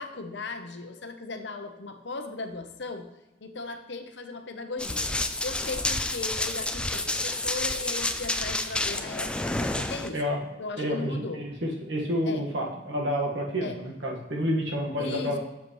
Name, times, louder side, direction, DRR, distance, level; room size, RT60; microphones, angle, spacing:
voice 1, 0.0-3.1 3.4-5.1 5.4-10.2 10.6-11.4 12.3-12.4 13.6-13.8 15.0-15.4, left 3 dB, 60° left, 6 dB, 0.8 m, -37 dB
Run, 4.8-10.1, left 2 dB, 5° left, 0.3 m, -29 dB
voice 2, 10.8-15.4, equal, 70° right, -1 dB, 1.6 m, -29 dB
7.8 x 6.8 x 3.1 m, 1.0 s
head